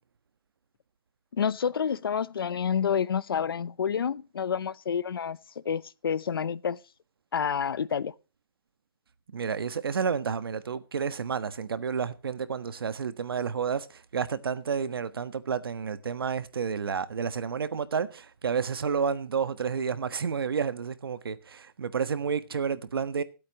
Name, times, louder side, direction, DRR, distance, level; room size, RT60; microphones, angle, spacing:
voice 1, 1.3-5.4 5.6-6.8 7.3-8.1, left 7 dB, 80° left, 0.8 m, -28 dB
voice 2, 9.3-23.2, right 6 dB, 90° right, 1.4 m, -30 dB
25.0 x 8.6 x 3.0 m
hypercardioid pair, 175°, 12 cm